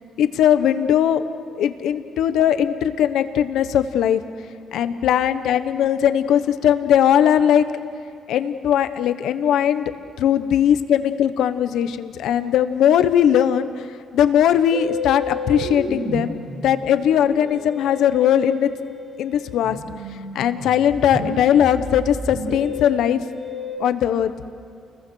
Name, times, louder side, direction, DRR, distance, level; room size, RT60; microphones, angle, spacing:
voice 1, 0.2-1.2 1.5-4.2 4.7-7.7 8.3-18.7 19.2-19.8 20.3-23.2 23.8-24.3, left 9 dB, 80° left, 11 dB, 1.1 m, -19 dB
Musical instrument, 14.7-23.8, left 1 dB, 45° right, 6.9 m, -32 dB
29.5 x 21.5 x 6.4 m, 2.3 s
cardioid pair, 90°, 0 cm